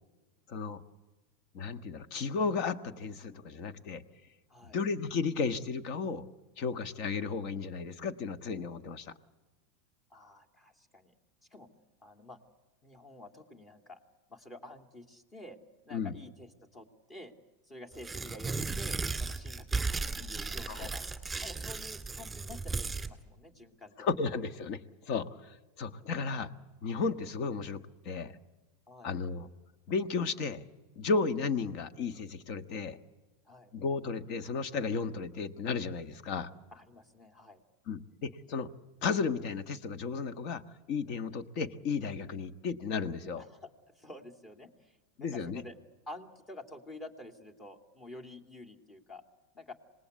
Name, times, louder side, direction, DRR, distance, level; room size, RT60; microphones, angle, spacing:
voice 1, 0.5-0.8 1.5-4.0 4.7-6.3 6.6-9.1 15.9-16.1 20.7-20.9 24.0-24.8 25.1-26.5 26.8-28.3 29.0-29.5 29.9-30.6 31.0-33.0 33.7-36.5 37.9-38.7 39.0-40.6 40.9-43.4 45.2-45.6, left 5 dB, 55° left, 10 dB, 1.4 m, -34 dB
voice 2, 10.1-11.1 11.5-11.7 12.0-12.4 12.8-14.0 14.3-15.6 15.8-17.3 17.7-21.0 21.4-24.0 28.9-29.1 33.5-33.7 36.7-37.6 43.4-43.7 44.0-45.8 46.1-49.2 49.5-49.7, left 1 dB, 25° left, 6 dB, 2.7 m, -49 dB
Tearing, 17.9-23.1, right 4 dB, 10° right, 2.3 m, -35 dB
26.5 x 19.5 x 8.2 m, 1.2 s
hypercardioid pair, 110°, 0 cm